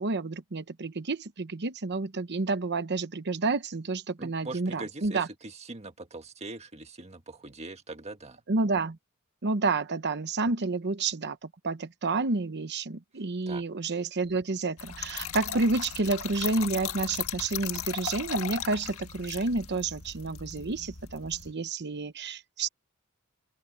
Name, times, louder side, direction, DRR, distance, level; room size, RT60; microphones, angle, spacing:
voice 1, 0.0-5.3 8.5-9.0 9.4-11.4 11.6-22.7, right 3 dB, 50° right, 0.9 m, -30 dB
voice 2, 4.2-8.4 13.5-13.6, right 2 dB, 30° right, 1.7 m, -42 dB
Trickle dribble / Fill (with liquid), 14.8-21.5, left 8 dB, 70° left, 1.7 m, -37 dB
open air
head